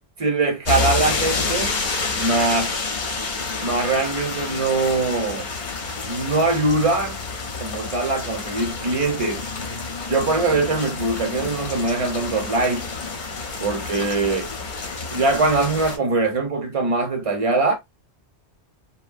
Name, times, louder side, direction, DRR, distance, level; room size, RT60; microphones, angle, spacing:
voice 1, 0.2-1.7 2.1-2.8 3.6-5.5 6.0-7.2 7.6-9.4 10.1-12.9 13.6-14.5 15.1-17.7, right 3 dB, 35° right, 0.8 m, -22 dB
sound 1, 0.7-16.0, left 4 dB, 50° left, 0.8 m, -29 dB
2.7 x 2.2 x 2.4 m
omnidirectional pair, 1.1 m